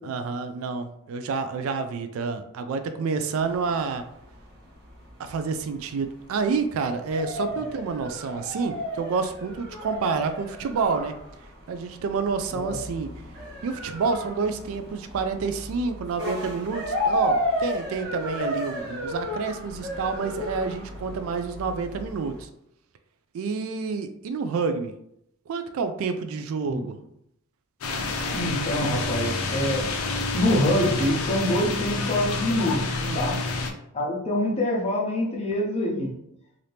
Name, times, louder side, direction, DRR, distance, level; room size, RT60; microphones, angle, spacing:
voice 1, 0.0-4.1 5.2-11.1 11.7-13.1 13.6-22.5 23.3-24.9 25.5-27.0 33.0-33.5, right 5 dB, 65° right, 8 dB, 0.3 m, -28 dB
sound 1, 3.3-22.4, left 1 dB, 50° right, 0.9 m, -34 dB
sound 2, 27.8-33.7, left 3 dB, 70° left, 0.5 m, -28 dB
voice 2, 28.3-29.8 30.3-32.8 33.1-33.4 33.9-36.1, left 1 dB, 30° left, -2 dB, 0.8 m, -25 dB
2.8 x 2.5 x 3.3 m, 0.76 s
head